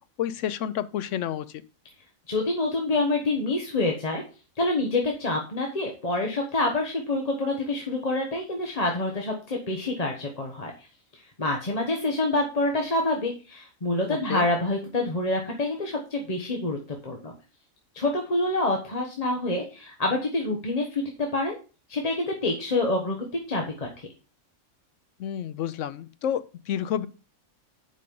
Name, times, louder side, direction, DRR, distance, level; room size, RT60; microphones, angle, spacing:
voice 1, 0.2-1.5 14.1-14.5 25.2-27.1, left 10 dB, 70° left, 14 dB, 0.9 m, -30 dB
voice 2, 2.3-4.2 4.6-10.7 11.1-16.8 17.0-17.3 17.9-21.5 21.9-24.1, left 2 dB, 30° left, 1 dB, 1.0 m, -27 dB
7.6 x 5.2 x 5.2 m, 0.34 s
omnidirectional pair, 1.4 m